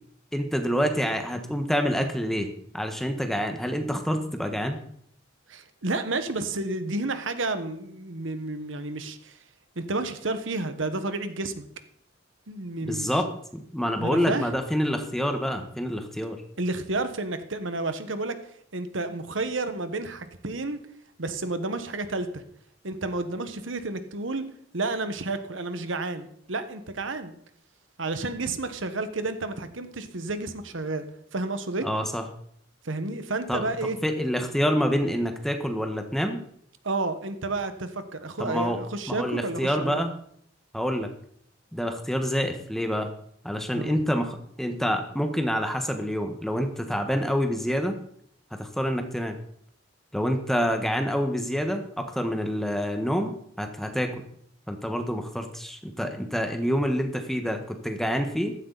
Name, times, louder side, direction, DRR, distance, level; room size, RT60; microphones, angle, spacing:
voice 1, 0.3-4.8 12.8-13.3 13.5-16.4 31.8-32.2 33.5-36.4 38.4-38.8 39.1-40.1 40.7-41.1 41.7-43.1 43.4-48.0 48.6-49.4 50.1-54.2 54.7-58.5, equal, ahead, 5 dB, 1.3 m, -27 dB
voice 2, 5.5-9.4 9.7-11.7 12.5-13.1 14.0-14.5 16.6-18.4 18.7-20.8 21.2-22.4 22.8-24.4 24.7-27.3 28.0-31.9 32.8-34.0 36.8-40.0 43.7-43.9, right 2 dB, 80° right, 10 dB, 1.3 m, -31 dB
15.0 x 12.5 x 4.1 m, 0.66 s
head